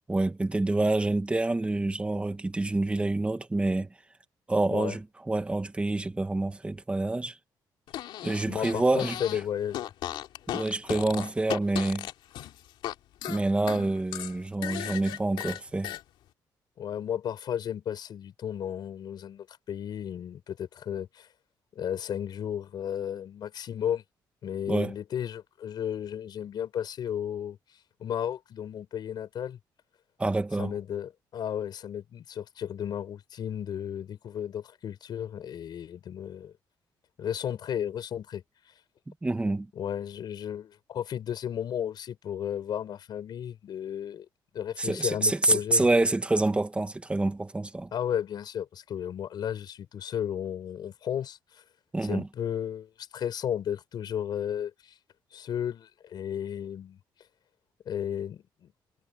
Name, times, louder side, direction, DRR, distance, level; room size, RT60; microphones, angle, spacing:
voice 1, 0.1-3.9 4.5-7.4 8.2-9.2 10.5-12.1 13.3-15.9 24.7-24.9 30.2-30.7 39.1-39.7 44.8-47.9 51.9-52.3, right 2 dB, 15° right, 1.8 m, -27 dB
Fart, 7.9-9.4 9.7-12.9 13.2-16.0, left 12 dB, 90° left, 2.6 m, -36 dB
voice 2, 8.5-9.9 16.8-21.3 21.7-24.0 24.4-27.6 28.0-29.6 30.6-36.5 37.2-38.4 39.8-44.3 44.5-45.9 47.9-51.6 52.0-54.9 55.3-57.0 57.9-58.7, left 9 dB, 60° left, 7.0 m, -34 dB
cardioid pair, 120°, 8 cm